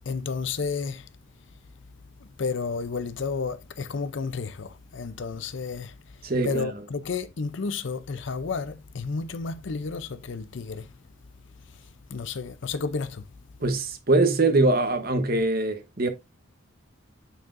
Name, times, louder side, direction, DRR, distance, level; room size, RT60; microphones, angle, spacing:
voice 1, 0.1-1.1 2.4-5.9 6.4-10.9 12.1-13.2, left 4 dB, 60° left, 0.5 m, -31 dB
voice 2, 6.2-6.7 13.6-16.1, right 2 dB, 45° right, 1.0 m, -23 dB
8.9 x 4.6 x 2.5 m
head